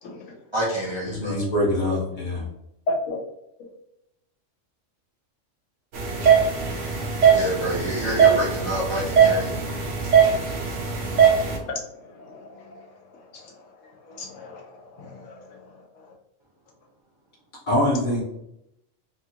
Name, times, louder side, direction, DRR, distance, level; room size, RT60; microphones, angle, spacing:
voice 1, 0.0-0.4 2.9-3.2 11.4-12.9 13.1-15.7 15.9-16.1, left 1 dB, 75° left, -1 dB, 1.0 m, -35 dB
voice 2, 0.5-1.4 7.3-9.6, right 1 dB, 30° right, -6 dB, 0.6 m, -28 dB
voice 3, 1.1-2.5 17.7-18.2, left 1 dB, 45° left, -3 dB, 0.9 m, -24 dB
sound 1, 5.9-11.6, right 7 dB, 75° right, 1.0 m, -20 dB
2.9 x 2.4 x 2.7 m, 0.81 s
omnidirectional pair, 1.3 m